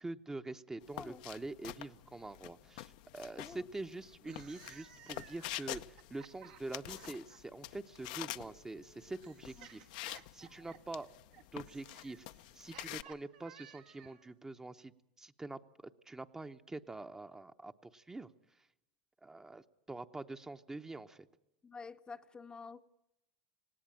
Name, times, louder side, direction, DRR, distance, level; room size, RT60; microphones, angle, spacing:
voice 1, 0.0-10.0 10.3-11.1 11.5-12.3 12.5-18.3 19.2-21.3, right 2 dB, 15° right, 0.8 m, -45 dB
sound 1, 0.8-13.0, left 16 dB, 70° left, 0.7 m, -48 dB
sound 2, 4.1-7.4 8.4-14.3, right 10 dB, 75° right, 1.7 m, -57 dB
voice 2, 21.6-22.8, left 4 dB, 20° left, 0.7 m, -49 dB
19.0 x 17.5 x 8.8 m
hypercardioid pair, 100°, 4 cm